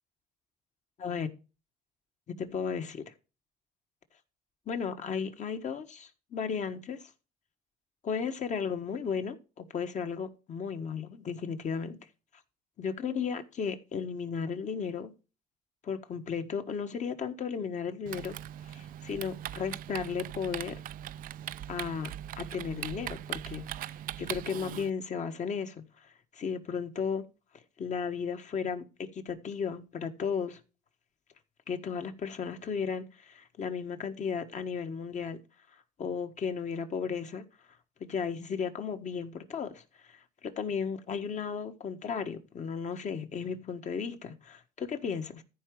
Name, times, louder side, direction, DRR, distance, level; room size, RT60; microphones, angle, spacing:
voice 1, 2.3-3.0 4.7-7.1 8.0-12.0 12.8-15.1 15.8-18.4 18.6-20.8 21.7-22.1 22.4-27.3 27.8-30.6 31.7-35.4 36.0-37.4 38.0-39.8 40.1-45.4, left 6 dB, 45° left, 1.5 m, -35 dB
Typing, 18.1-24.9, right 12 dB, 55° right, 0.4 m, -40 dB
14.5 x 4.8 x 4.9 m
cardioid pair, 110°, 17 cm